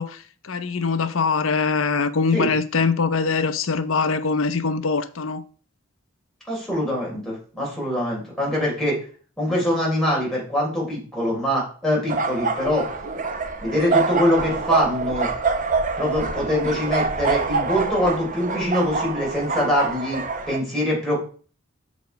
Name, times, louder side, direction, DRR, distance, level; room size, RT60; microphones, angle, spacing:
voice 1, 0.0-5.4, left 4 dB, 70° left, 0.7 m, -23 dB
voice 2, 6.5-9.0 9.4-12.9 13.6-15.3 16.0-21.2, left 1 dB, 5° left, 3.7 m, -23 dB
sound 1, 12.1-20.6, right 4 dB, 40° right, 0.8 m, -25 dB
6.6 x 5.0 x 5.1 m
head